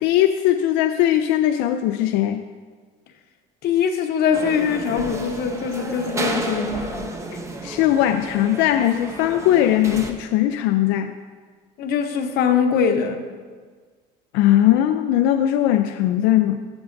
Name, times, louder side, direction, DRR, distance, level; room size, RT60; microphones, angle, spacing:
voice 1, 0.0-2.4 7.6-11.1 14.3-16.6, left 12 dB, 75° left, 0.4 m, -19 dB
voice 2, 3.6-7.1 11.8-13.2, left 7 dB, 55° left, 0.9 m, -22 dB
sound 1, 4.3-10.1, right 2 dB, 15° right, 0.7 m, -31 dB
14.0 x 6.9 x 2.6 m
cardioid pair, 135°, 20 cm